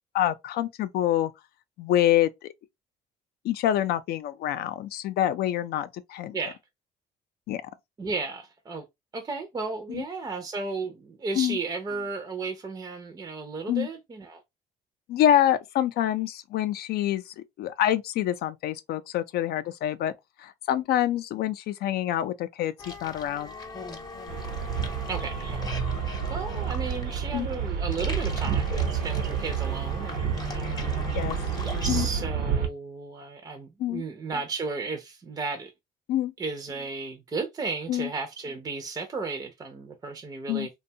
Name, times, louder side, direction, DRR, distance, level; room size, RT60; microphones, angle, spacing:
voice 1, 0.1-1.3 1.8-2.5 3.4-6.4 7.5-7.6 9.9-10.0 11.4-11.6 13.7-13.9 15.1-20.1 20.4-23.5 27.3-27.5 31.1-31.4 31.9-32.1 33.8-34.0 36.1-36.3 37.9-38.1 40.5-40.7, left 12 dB, 70° left, 0.4 m, -26 dB
voice 2, 8.0-8.8 9.1-14.4 25.1-31.0 31.8-35.7 36.4-40.7, right 4 dB, 25° right, 0.5 m, -34 dB
sound 1, 22.8-32.1, left 3 dB, 25° left, 0.7 m, -40 dB
sound 2, 24.3-32.7, right 7 dB, 85° right, 0.8 m, -29 dB
2.6 x 2.2 x 2.7 m
cardioid pair, 110°, 17 cm